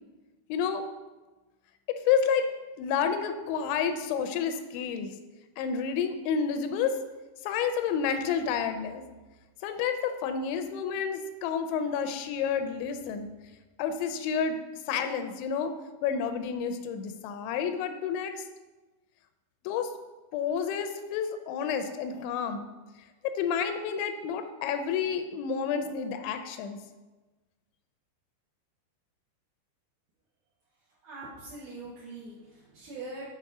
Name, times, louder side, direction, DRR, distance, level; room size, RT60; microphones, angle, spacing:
voice 1, 0.5-0.9 1.9-2.5 2.8-5.1 5.6-7.0 7.4-9.0 9.6-13.3 13.8-14.6 14.9-15.7 16.0-18.4 19.7-19.9 20.3-22.7 23.2-26.8, left 7 dB, 85° left, 8 dB, 2.9 m, -30 dB
voice 2, 31.0-33.2, right 2 dB, 75° right, -7 dB, 1.8 m, -42 dB
8.0 x 3.9 x 4.7 m, 1.2 s
omnidirectional pair, 5.1 m